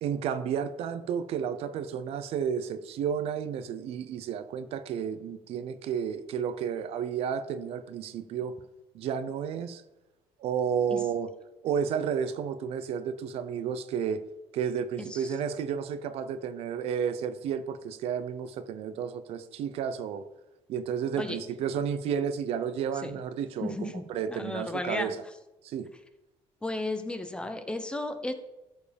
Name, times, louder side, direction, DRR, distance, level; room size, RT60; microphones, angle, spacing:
voice 1, 0.0-8.6 8.9-9.8 10.4-11.3 11.6-14.2 14.5-20.3 20.7-25.2 25.6-25.9, right 7 dB, 70° right, 0.7 m, -32 dB
voice 2, 23.6-24.0 24.3-25.1 26.6-28.3, left 2 dB, 10° left, 0.8 m, -34 dB
13.5 x 4.7 x 5.2 m
cardioid pair, 140°, 11 cm